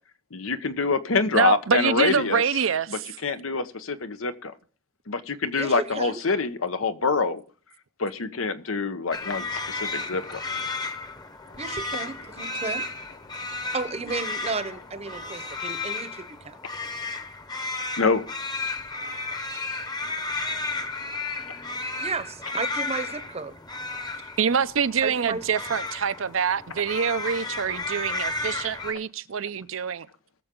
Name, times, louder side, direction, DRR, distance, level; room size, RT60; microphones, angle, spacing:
voice 1, 0.3-2.4 2.9-4.5 5.1-7.4 8.0-10.4 18.0-18.3, left 4 dB, 85° left, 1.0 m, -26 dB
voice 2, 1.3-3.1 24.4-30.1, right 6 dB, 70° right, 0.6 m, -25 dB
voice 3, 5.5-6.2 11.6-12.9 13.7-16.6 22.0-23.5 25.0-25.4, right 4 dB, 30° right, 0.9 m, -33 dB
sound 1, 9.1-28.9, left 3 dB, 20° left, 1.0 m, -33 dB
20.5 x 6.9 x 3.7 m
head